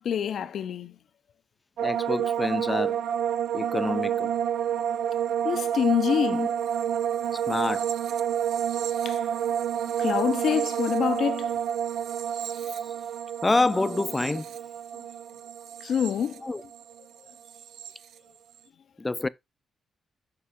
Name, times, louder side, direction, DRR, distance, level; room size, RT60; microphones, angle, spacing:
voice 1, 0.0-1.0 5.4-6.4 9.0-9.3 10.0-11.6 14.9-15.1 15.8-16.7, left 8 dB, 70° left, 0.6 m, -27 dB
voice 2, 1.8-3.0 3.5-4.3 6.3-6.5 7.3-7.9 13.4-14.5 16.4-16.6 19.0-19.3, left 2 dB, 25° left, 0.5 m, -27 dB
sound 1, 1.8-17.0 17.3-17.9, right 9 dB, 80° right, 0.4 m, -29 dB
6.9 x 5.6 x 3.6 m
cardioid pair, 70°, 0 cm